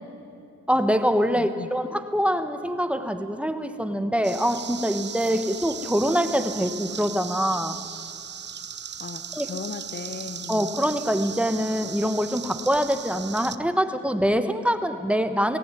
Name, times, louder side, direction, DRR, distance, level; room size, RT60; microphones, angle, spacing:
voice 1, 0.7-7.8 9.3-9.5 10.5-15.6, equal, 5° right, 9 dB, 1.2 m, -24 dB
voice 2, 1.3-1.7 9.0-10.8, left 5 dB, 35° left, 11 dB, 1.0 m, -37 dB
sound 1, 4.2-13.6, right 7 dB, 35° right, 0.8 m, -37 dB
19.0 x 16.5 x 9.3 m, 2.5 s
cardioid pair, 90°, 30 cm